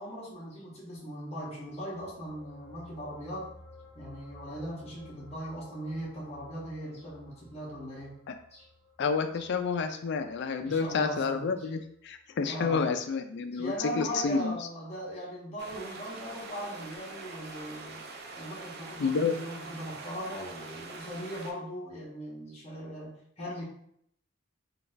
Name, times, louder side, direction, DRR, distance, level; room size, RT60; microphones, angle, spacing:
voice 1, 0.0-3.5 3.9-8.1 8.5-8.7 9.3-9.4 10.6-11.7 12.4-12.9 13.5-18.0 18.4-23.6, equal, 30° left, -5 dB, 1.0 m, -39 dB
sound 1, 1.7-12.2 12.5-12.7, left 1 dB, 10° left, 1.3 m, -55 dB
voice 2, 9.0-14.6 19.0-19.3, left 5 dB, 55° left, 7 dB, 0.3 m, -29 dB
sound 2, 15.6-21.5, right 3 dB, 50° right, 0.5 m, -44 dB
3.9 x 2.3 x 2.6 m, 0.69 s
head